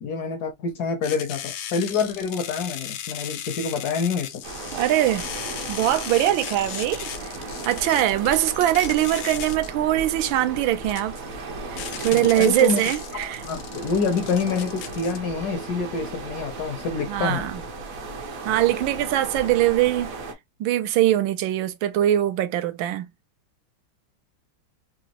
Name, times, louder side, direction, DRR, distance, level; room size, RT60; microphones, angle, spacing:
voice 1, 0.0-4.4 12.1-12.8 13.1-17.5, left 5 dB, 65° left, 1.0 m, -27 dB
sound 1, 1.0-15.2, left 10 dB, 85° left, 1.5 m, -36 dB
sound 2, 4.4-20.3, right 3 dB, 55° right, 1.0 m, -36 dB
voice 2, 4.7-5.3 5.7-7.1 7.6-11.2 11.7-13.4 17.1-17.5 18.4-20.1 20.6-23.1, right 13 dB, 75° right, 1.3 m, -22 dB
4.1 x 2.7 x 2.8 m
omnidirectional pair, 2.3 m